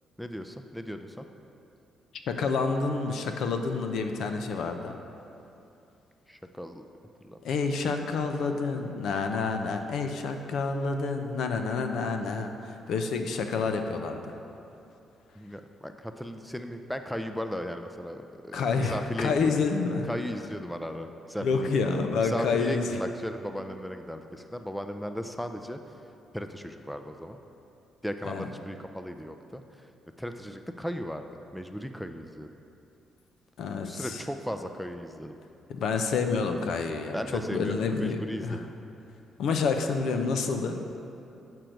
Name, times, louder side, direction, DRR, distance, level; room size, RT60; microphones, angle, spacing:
voice 1, 0.2-1.3 6.3-6.8 7.2-7.4 15.4-19.3 20.0-21.7 22.2-25.8 26.3-27.4 28.0-29.6 30.2-32.5 33.8-35.3 37.1-38.7, equal, 5° left, 7 dB, 0.4 m, -36 dB
voice 2, 2.3-5.0 7.4-14.4 18.5-20.1 21.4-23.0 28.2-28.5 33.6-34.2 35.7-38.6 39.4-40.8, left 4 dB, 75° left, 6 dB, 0.5 m, -28 dB
7.7 x 4.5 x 5.1 m, 2.7 s
cardioid pair, 90°, 0 cm